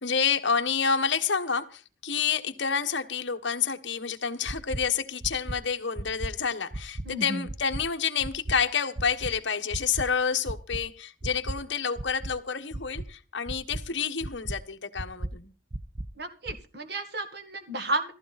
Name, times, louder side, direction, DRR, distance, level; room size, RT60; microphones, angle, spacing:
voice 1, 0.0-15.5, left 6 dB, 60° left, 1.4 m, -29 dB
sound 1, 4.5-4.8 5.2-5.5 6.0-6.3 6.7-7.0 7.5-7.8 8.2-8.5 9.0-9.3 9.7-10.0 10.5-10.8 11.2-11.5 12.0-12.3 12.7-13.0 13.5-13.8 14.2-14.6 15.0-15.3 15.7-16.1 16.5-16.6, right 1 dB, 30° right, 0.8 m, -34 dB
voice 2, 7.0-7.5 16.2-18.1, right 2 dB, 50° right, 2.0 m, -32 dB
15.0 x 15.0 x 4.2 m
head